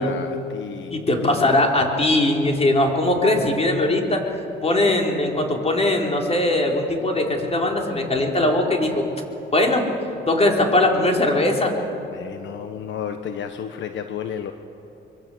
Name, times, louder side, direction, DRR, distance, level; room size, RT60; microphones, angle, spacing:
voice 1, 0.0-1.5 12.1-14.5, left 8 dB, 70° left, 8 dB, 1.2 m, -32 dB
voice 2, 0.9-4.2 4.6-9.1 9.5-9.8 10.3-11.7, left 1 dB, 30° left, 1 dB, 4.4 m, -20 dB
25.0 x 22.5 x 8.1 m, 2.8 s
cardioid pair, 90°, 20 cm